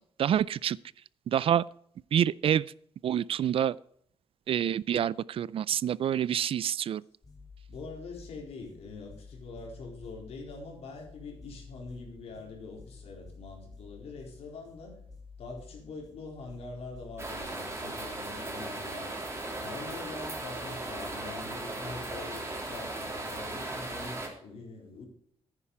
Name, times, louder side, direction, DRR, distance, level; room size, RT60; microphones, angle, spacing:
voice 1, 0.2-0.8 1.3-1.6 2.1-2.7 3.0-3.7 4.5-7.0, right 9 dB, 65° right, 22 dB, 0.4 m, -27 dB
sound 1, 7.2-17.4, left 4 dB, 40° left, 3.0 m, -51 dB
voice 2, 7.7-15.0 15.4-19.2 19.6-25.1, left 3 dB, 85° left, 0 dB, 4.1 m, -44 dB
sound 2, 17.2-24.3, right 2 dB, 25° right, 3.2 m, -37 dB
10.0 x 9.8 x 4.8 m, 0.67 s
cardioid pair, 105°, 10 cm